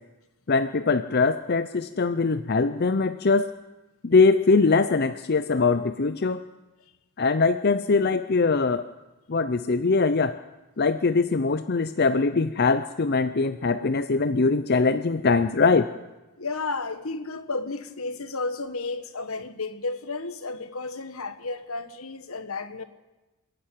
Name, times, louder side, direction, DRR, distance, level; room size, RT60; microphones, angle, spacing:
voice 1, 0.5-3.5 4.0-6.4 7.2-8.8 9.3-10.3 10.8-15.9, left 4 dB, 45° left, 11 dB, 0.6 m, -22 dB
voice 2, 16.4-22.8, left 3 dB, 75° left, 11 dB, 1.6 m, -32 dB
27.0 x 11.5 x 9.1 m, 1.1 s
head